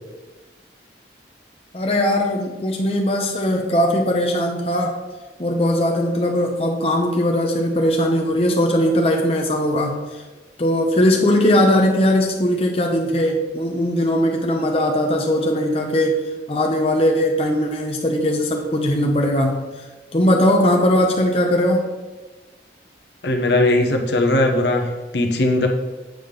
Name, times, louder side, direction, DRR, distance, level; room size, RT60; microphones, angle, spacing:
voice 1, 1.7-5.0 5.4-10.0 10.6-16.2 16.5-19.7 20.1-21.9, left 1 dB, 30° left, 1 dB, 0.7 m, -19 dB
voice 2, 23.2-25.7, left 2 dB, 65° left, 3 dB, 0.9 m, -19 dB
7.7 x 3.6 x 6.5 m, 1.2 s
head